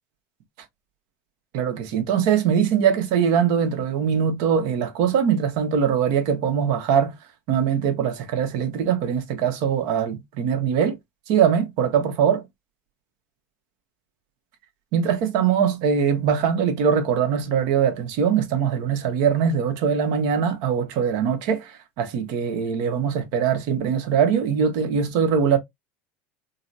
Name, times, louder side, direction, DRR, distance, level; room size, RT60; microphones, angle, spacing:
voice 1, 1.5-7.1 7.5-11.0 11.3-12.4 14.9-25.6, right 7 dB, 65° right, 0.9 m, -22 dB
3.8 x 2.0 x 2.6 m
supercardioid pair, 130°, 7 cm